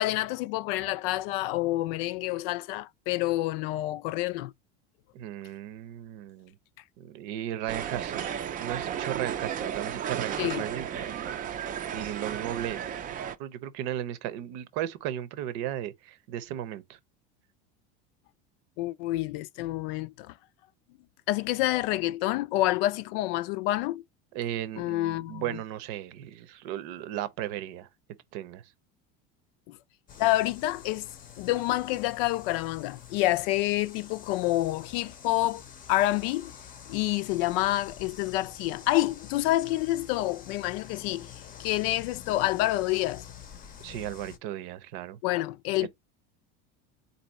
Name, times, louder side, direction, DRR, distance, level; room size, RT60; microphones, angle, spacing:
voice 1, 0.0-4.5 10.4-10.6 18.8-20.4 21.3-24.0 24.8-25.4 29.7-29.8 30.2-31.1 31.4-35.6 35.9-36.5 36.9-41.3 41.6-43.3 45.2-45.9, left 16 dB, 75° left, 0.5 m, -28 dB
voice 2, 5.1-6.6 7.0-8.3 8.6-11.4 11.9-12.9 13.4-17.0 24.3-27.9 28.3-28.7 43.8-45.2 45.8-45.9, right 12 dB, 65° right, 0.8 m, -35 dB
sound 1, 7.7-13.4, right 9 dB, 30° right, 0.5 m, -34 dB
sound 2, 30.1-44.4, left 9 dB, 30° left, 0.6 m, -47 dB
4.2 x 2.7 x 4.1 m
supercardioid pair, 125°, 29 cm